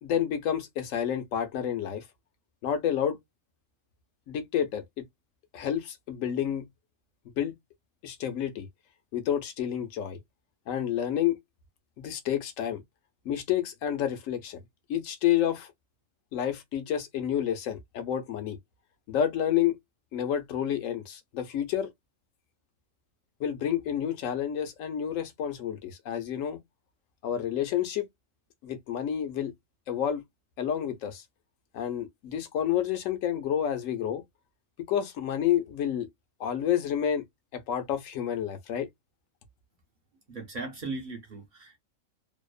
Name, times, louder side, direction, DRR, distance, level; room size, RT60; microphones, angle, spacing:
voice 1, 0.0-2.0 2.6-3.2 4.3-5.0 5.5-6.6 7.4-7.5 8.0-8.7 9.1-10.2 10.7-11.4 12.0-12.8 13.2-14.6 14.9-15.7 16.3-18.6 19.1-19.8 20.1-21.9 23.4-26.6 27.2-28.1 28.6-29.5 29.9-30.2 30.6-31.2 31.7-34.2 34.9-36.1 36.4-37.2 37.5-38.9, left 10 dB, 85° left, 1.0 m, -29 dB
voice 2, 40.3-41.8, right 3 dB, 50° right, 0.7 m, -38 dB
2.8 x 2.0 x 2.3 m
omnidirectional pair, 1.3 m